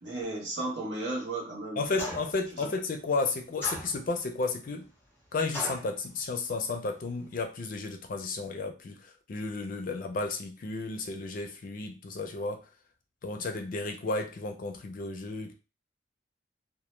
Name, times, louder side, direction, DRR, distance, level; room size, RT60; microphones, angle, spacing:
voice 1, 0.0-2.0 2.5-2.7, right 2 dB, 65° right, -1 dB, 0.9 m, -34 dB
voice 2, 1.8-4.9 5.3-12.6 13.2-15.5, left 3 dB, 45° left, 4 dB, 0.4 m, -33 dB
sound 1, 2.0-2.5 3.6-4.3 5.5-5.9, equal, 10° left, 0.7 m, -37 dB
2.1 x 2.1 x 3.0 m, 0.31 s
head